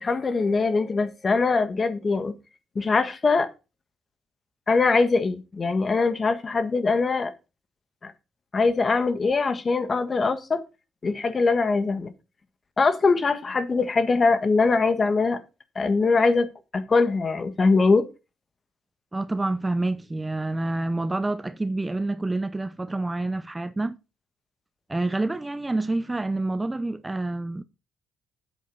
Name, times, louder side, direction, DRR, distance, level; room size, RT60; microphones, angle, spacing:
voice 1, 0.0-2.3 2.7-3.5 4.7-7.3 8.0-8.1 8.5-10.6 11.0-12.1 12.8-15.4 15.7-18.1, left 4 dB, 35° left, 1.6 m, -22 dB
voice 2, 19.1-24.0 24.9-27.6, right 2 dB, 15° right, 0.6 m, -28 dB
8.4 x 7.7 x 5.4 m
cardioid pair, 90°, 0 cm